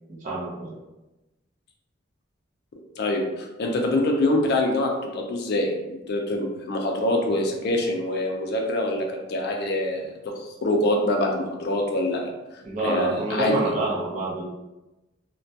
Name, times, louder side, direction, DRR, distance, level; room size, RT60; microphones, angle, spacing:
voice 1, 0.1-0.7 12.6-14.5, right 2 dB, 40° right, -4 dB, 0.6 m, -27 dB
voice 2, 3.0-10.3 10.6-12.3 12.8-13.6, left 1 dB, 55° left, 2 dB, 0.4 m, -25 dB
2.2 x 2.2 x 2.6 m, 1.0 s
head